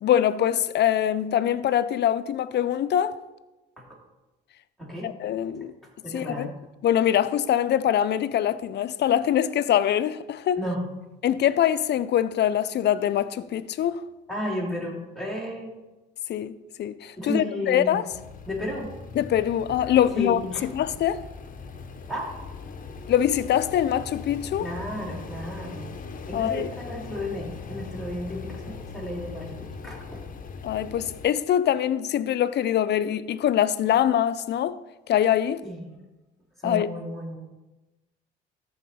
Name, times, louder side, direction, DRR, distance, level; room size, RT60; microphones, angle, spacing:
voice 1, 0.0-3.2 5.0-5.7 6.1-6.5 6.8-10.6 11.2-14.0 16.3-16.5 16.8-18.0 19.2-21.3 23.1-24.7 26.3-26.7 30.6-34.8 35.1-35.6 36.6-36.9, left 10 dB, 60° left, 0.5 m, -23 dB
voice 2, 4.8-5.1 6.0-6.5 10.6-10.8 14.3-15.8 17.2-18.0 18.5-18.9 20.1-20.7 22.1-22.3 24.6-25.9 26.3-30.2 35.6-35.9 36.6-37.4, left 1 dB, ahead, 3.3 m, -33 dB
sound 1, 18.1-31.3, left 5 dB, 45° left, 0.9 m, -40 dB
14.0 x 4.7 x 4.2 m
cardioid pair, 90°, 20 cm